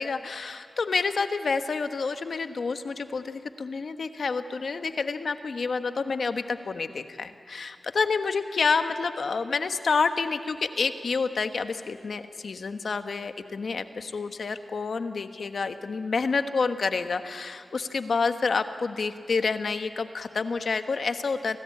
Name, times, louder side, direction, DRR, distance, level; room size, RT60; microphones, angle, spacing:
voice 1, 0.0-21.6, left 4 dB, 75° left, 8 dB, 1.2 m, -28 dB
27.5 x 18.5 x 8.6 m, 2.5 s
cardioid pair, 40°, 0 cm